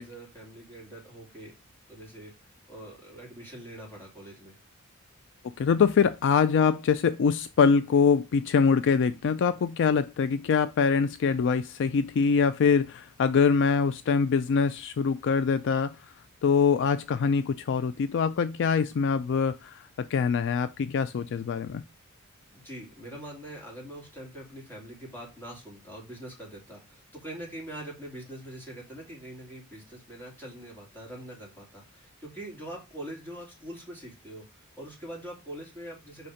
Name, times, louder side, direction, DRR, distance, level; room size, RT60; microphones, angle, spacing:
voice 1, 0.0-1.5 1.9-2.3 2.7-4.6 22.5-36.3, right 1 dB, 10° left, 2.8 m, -43 dB
voice 2, 5.6-16.0 16.4-21.8, left 6 dB, 55° left, 0.3 m, -24 dB
5.4 x 4.2 x 4.9 m
head